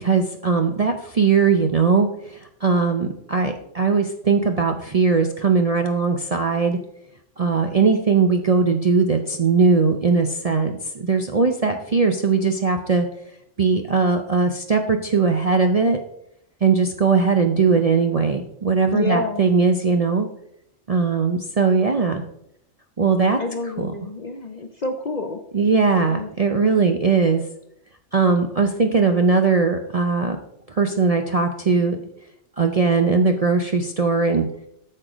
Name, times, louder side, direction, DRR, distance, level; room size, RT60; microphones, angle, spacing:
voice 1, 0.0-6.8 7.4-13.1 13.6-16.0 16.6-20.3 20.9-22.2 23.0-23.4 23.8-23.9 25.5-27.4 28.1-30.4 30.7-32.0 32.6-34.5, right 4 dB, 45° right, 5 dB, 0.5 m, -19 dB
voice 2, 18.9-19.5 23.4-25.4 26.1-26.7, left 3 dB, 45° left, 7 dB, 0.6 m, -29 dB
8.7 x 6.7 x 4.9 m, 0.75 s
omnidirectional pair, 1.3 m